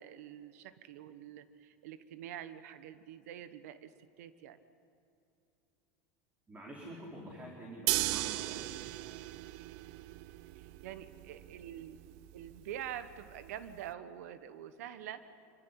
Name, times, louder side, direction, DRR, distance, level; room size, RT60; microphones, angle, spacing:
voice 1, 0.0-3.9 4.2-4.6 10.5-12.0 12.3-15.3, right 10 dB, 80° right, 13 dB, 1.2 m, -46 dB
voice 2, 6.5-8.7, right 1 dB, 20° right, -2 dB, 4.0 m, -47 dB
sound 1, 7.9-13.9, right 18 dB, 65° right, 0.6 m, -38 dB
25.5 x 14.5 x 9.9 m, 2.8 s
supercardioid pair, 120°, 8 cm